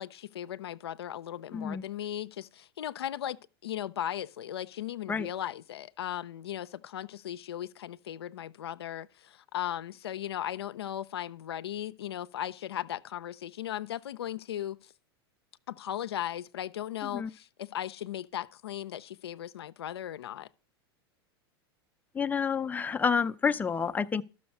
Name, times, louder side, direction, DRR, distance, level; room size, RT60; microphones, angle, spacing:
voice 1, 0.0-14.9 15.7-20.5, left 11 dB, 85° left, 0.4 m, -37 dB
voice 2, 1.5-1.8 5.1-5.3 17.1-17.3 22.1-24.2, left 6 dB, 15° left, 0.5 m, -29 dB
12.5 x 6.4 x 5.4 m
hypercardioid pair, 100°, 13 cm